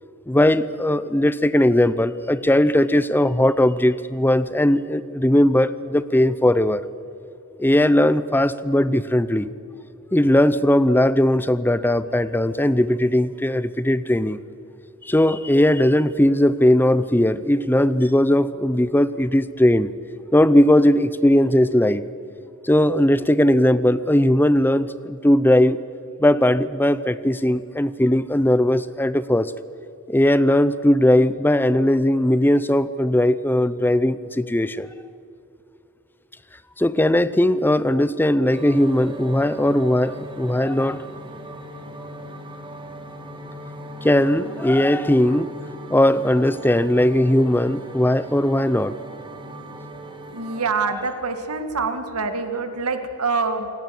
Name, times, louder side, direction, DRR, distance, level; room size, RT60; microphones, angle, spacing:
voice 1, 0.3-6.8 7.6-9.5 10.1-14.4 15.0-19.9 20.3-22.1 22.6-25.8 26.2-29.5 30.1-34.9 36.8-41.0 44.0-45.5 45.9-49.0 50.8-51.1, left 1 dB, 10° left, 16 dB, 0.6 m, -18 dB
sound 1, 38.5-50.7, right 1 dB, 20° right, 2.2 m, -38 dB
voice 2, 50.3-53.7, right 4 dB, 85° right, 8 dB, 2.1 m, -25 dB
28.0 x 18.0 x 7.8 m, 2.7 s
head